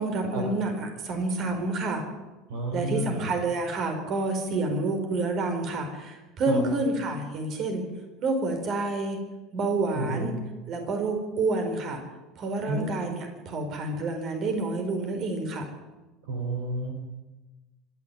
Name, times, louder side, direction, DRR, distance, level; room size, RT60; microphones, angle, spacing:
voice 1, 0.0-2.0 2.7-7.9 8.2-9.2 9.5-10.4 10.7-12.0 12.4-15.7, right 2 dB, 45° right, 5 dB, 4.6 m, -28 dB
voice 2, 2.5-3.3 6.5-6.6 9.9-10.3 12.7-12.9 16.2-16.9, right 1 dB, 65° right, 3 dB, 3.5 m, -31 dB
25.5 x 11.0 x 9.3 m, 1.1 s
figure-of-eight pair, 70°, 0 cm